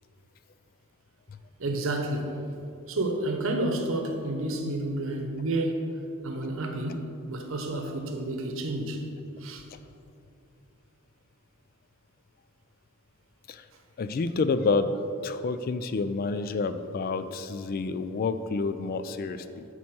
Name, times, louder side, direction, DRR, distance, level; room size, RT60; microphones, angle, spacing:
voice 1, 1.6-2.4 2.9-5.9 6.2-9.1 9.4-9.6, right 2 dB, 60° right, 0.9 m, -30 dB
voice 2, 14.0-14.9 15.2-19.7, left 4 dB, 40° left, 0.3 m, -29 dB
9.0 x 4.2 x 6.0 m
head